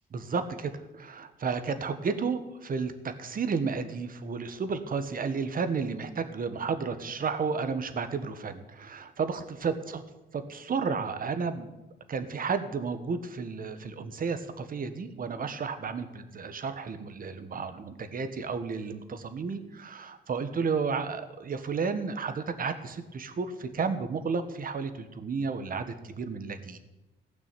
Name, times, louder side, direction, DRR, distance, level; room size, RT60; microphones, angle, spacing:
voice 1, 0.1-10.0 10.3-11.7 12.1-26.8, right 5 dB, 45° right, 10 dB, 1.4 m, -32 dB
15.5 x 6.1 x 9.1 m, 1.0 s
cardioid pair, 90°, 20 cm